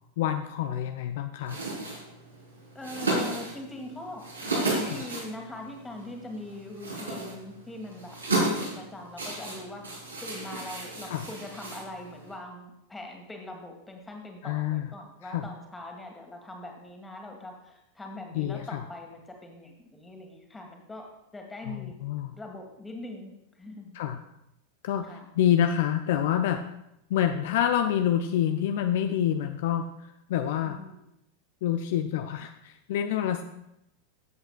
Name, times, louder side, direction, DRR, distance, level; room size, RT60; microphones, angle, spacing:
voice 1, 0.2-1.6 11.0-11.2 14.4-14.9 15.2-15.5 18.4-18.8 21.7-22.3 23.9-24.2 24.8-26.6 27.1-29.9 30.3-30.8 31.6-33.4, left 10 dB, 55° left, 8 dB, 0.4 m, -27 dB
sound 1, 1.4-12.3, right 2 dB, 80° right, 3.6 m, -34 dB
voice 2, 2.8-4.3 4.6-21.1 21.3-22.0 22.3-24.0 25.1-25.3 30.6-31.0, left 1 dB, 10° left, 2 dB, 1.8 m, -42 dB
14.5 x 7.8 x 2.4 m, 0.84 s
figure-of-eight pair, 90°, 0 cm